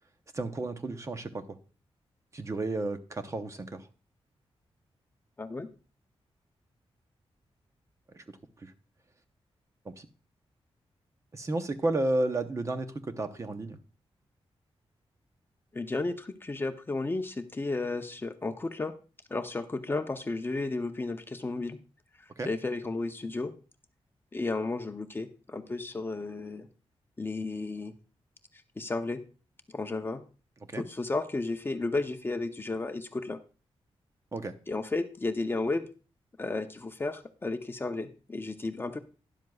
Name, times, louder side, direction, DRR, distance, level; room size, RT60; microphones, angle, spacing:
voice 1, 0.3-1.4 2.3-3.9 8.1-8.2 8.6-8.7 9.9-10.1 11.3-13.8 22.4-22.5 30.7-30.8 34.3-34.6, right 2 dB, 30° right, 8 dB, 0.8 m, -32 dB
voice 2, 15.7-18.9 19.3-21.8 22.4-23.5 24.3-26.7 27.2-27.9 28.8-29.2 29.7-30.2 30.7-33.4 34.7-35.9 36.4-39.0, left 3 dB, 20° left, 7 dB, 0.6 m, -33 dB
12.5 x 10.5 x 2.3 m, 0.35 s
wide cardioid pair, 155°, 10 cm